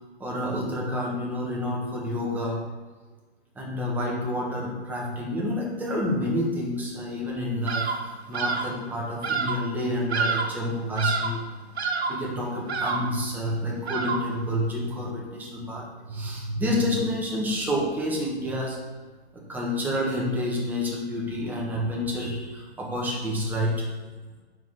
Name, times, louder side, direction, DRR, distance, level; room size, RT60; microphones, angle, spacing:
voice 1, 0.2-2.6 3.5-11.4 12.1-18.8 19.3-23.9, left 1 dB, 5° right, -4 dB, 1.1 m, -29 dB
Bird vocalization bird call bird song, 7.7-8.1 8.3-8.8 9.2-9.7 10.1-10.6 11.0-11.4 11.8-12.3 12.7-13.2 13.9-14.4, right 4 dB, 75° right, 0.9 m, -28 dB
5.4 x 4.7 x 4.7 m, 1.4 s
hypercardioid pair, 130°, 33 cm